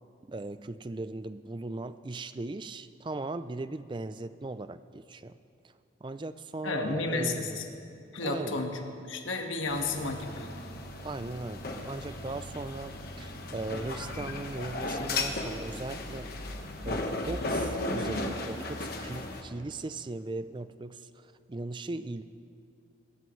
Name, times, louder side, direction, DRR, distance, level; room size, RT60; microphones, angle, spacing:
voice 1, 0.3-5.3 6.0-7.4 8.2-8.6 11.0-16.3 16.8-22.2, right 2 dB, 25° right, 13 dB, 0.4 m, -38 dB
voice 2, 6.6-7.6 8.1-10.5, left 2 dB, 90° left, 3 dB, 1.6 m, -32 dB
sound 1, 9.7-19.4, left 2 dB, 50° left, 1.3 m, -35 dB
26.0 x 14.0 x 3.2 m, 2.6 s
head